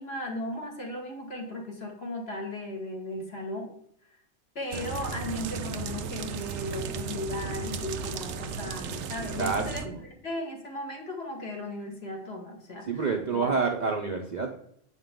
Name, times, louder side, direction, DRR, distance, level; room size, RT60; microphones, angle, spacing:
voice 1, 0.0-3.7 4.6-9.8 10.2-12.8 13.3-13.5, left 1 dB, 50° left, 0 dB, 2.0 m, -36 dB
sound 1, 4.7-9.9, right 6 dB, 85° right, 1.0 m, -35 dB
voice 2, 9.4-10.0 12.8-14.5, right 4 dB, 40° right, 1 dB, 0.7 m, -28 dB
8.0 x 5.5 x 3.6 m, 0.70 s
omnidirectional pair, 1.4 m